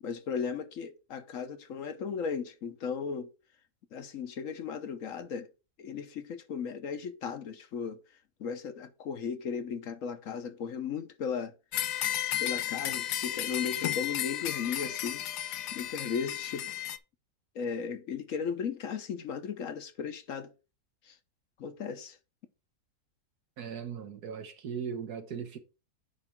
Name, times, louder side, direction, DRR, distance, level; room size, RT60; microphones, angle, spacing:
voice 1, 0.0-3.3 3.9-5.5 5.8-8.0 8.4-11.5 12.4-15.2 15.7-16.9 17.5-20.5 21.1-21.2 21.6-22.2, left 6 dB, 60° left, 1.3 m, -36 dB
sound 1, 11.7-17.0, left 12 dB, 90° left, 1.3 m, -33 dB
voice 2, 23.6-25.6, right 7 dB, 70° right, 1.6 m, -38 dB
9.9 x 3.3 x 5.8 m
omnidirectional pair, 1.7 m